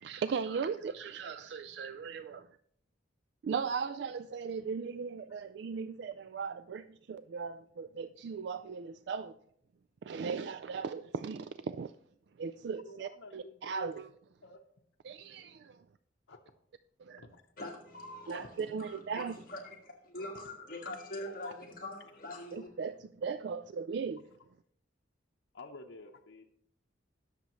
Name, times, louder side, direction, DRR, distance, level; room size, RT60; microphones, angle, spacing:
voice 1, 0.0-2.5 3.4-9.3 10.0-11.9 12.4-14.1 15.0-15.8 17.0-17.2 18.3-19.4 22.5-24.2, right 5 dB, 60° right, 0.3 m, -38 dB
voice 2, 12.8-13.9 14.4-14.6 16.3-16.4 17.2-17.4 21.4-21.5 25.5-26.5, left 3 dB, 85° left, 0.8 m, -50 dB
voice 3, 17.6-22.7, left 1 dB, 45° left, 1.8 m, -44 dB
19.5 x 6.7 x 3.1 m
head